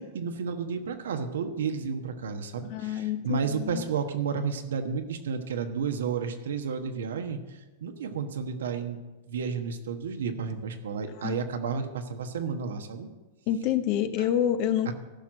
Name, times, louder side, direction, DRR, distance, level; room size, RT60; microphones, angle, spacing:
voice 1, 0.0-9.0 9.3-13.1 14.2-14.3 14.9-15.0, right 6 dB, 85° right, 7 dB, 1.2 m, -32 dB
voice 2, 2.7-3.8 11.2-11.4 13.5-14.9, left 10 dB, 50° left, 10 dB, 0.8 m, -27 dB
15.0 x 6.0 x 6.4 m, 1.2 s
hypercardioid pair, 125°, 0 cm